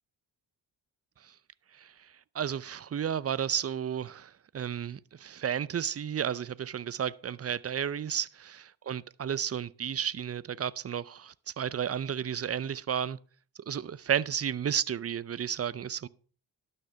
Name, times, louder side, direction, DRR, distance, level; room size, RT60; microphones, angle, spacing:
voice 1, 2.3-13.2 13.7-16.1, right 8 dB, 35° right, 0.5 m, -32 dB
12.0 x 6.5 x 5.6 m
cardioid pair, 75°, 45 cm